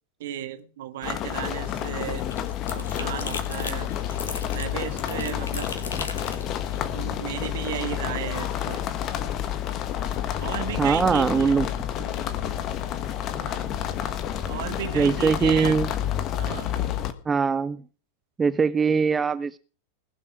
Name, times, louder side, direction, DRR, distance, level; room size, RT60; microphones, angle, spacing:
voice 1, 0.2-2.3 2.7-3.9 4.5-5.7 6.9-8.8 10.4-11.6 12.0-12.2 14.5-15.8 16.4-16.7, right 11 dB, 55° right, 1.5 m, -34 dB
sound 1, 1.0-17.1, left 10 dB, 35° left, 1.5 m, -29 dB
sound 2, 1.4-7.6, left 5 dB, 65° left, 2.3 m, -37 dB
voice 2, 10.8-11.7 13.5-13.7 14.9-15.9 17.3-17.8 18.4-19.6, right 5 dB, 15° right, 0.6 m, -22 dB
20.0 x 7.4 x 6.1 m
figure-of-eight pair, 90°, 0 cm